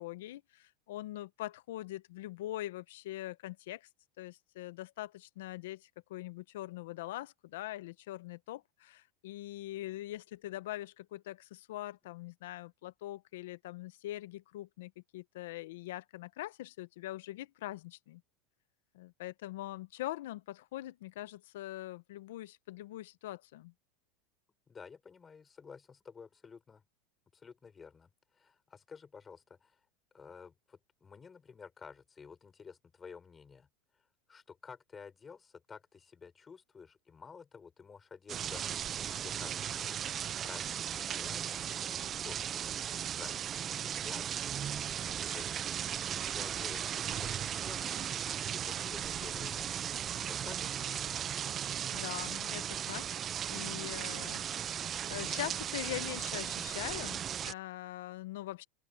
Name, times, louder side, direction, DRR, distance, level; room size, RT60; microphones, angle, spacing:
voice 1, 0.0-3.9 4.2-18.2 18.9-23.7 51.9-53.2 53.5-58.6, left 15 dB, 80° left, 0.9 m, -43 dB
voice 2, 24.7-26.8 27.3-29.8 30.1-33.7 34.3-40.2 40.4-42.8 43.2-48.0 48.3-51.2, left 5 dB, 20° left, 4.4 m, -52 dB
sound 1, 38.3-57.5, right 9 dB, 30° right, 0.4 m, -37 dB
open air
supercardioid pair, 135°, 0 cm